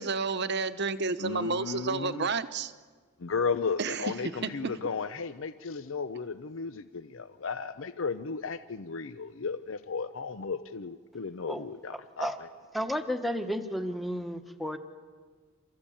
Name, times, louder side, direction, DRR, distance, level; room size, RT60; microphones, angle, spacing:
voice 1, 0.0-2.7 3.8-4.1 4.4-4.7, right 4 dB, 55° right, 1.0 m, -30 dB
voice 2, 1.2-2.3 3.2-12.5, left 5 dB, 70° left, 0.7 m, -34 dB
voice 3, 12.7-14.8, equal, ahead, 1.2 m, -32 dB
28.5 x 14.0 x 8.7 m
head